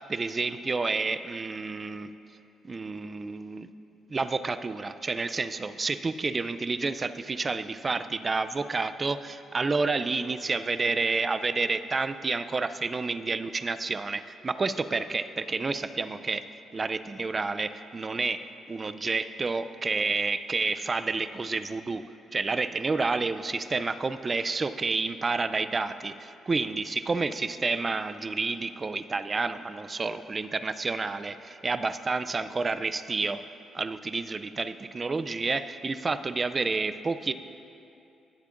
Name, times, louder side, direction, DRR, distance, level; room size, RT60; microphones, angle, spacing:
voice 1, 0.1-2.1 2.6-3.7 4.1-16.4 16.7-22.0 22.3-33.4 33.7-37.3, right 3 dB, 30° right, 12 dB, 0.4 m, -29 dB
18.5 x 8.2 x 2.5 m, 2.7 s
cardioid pair, 90°, 0 cm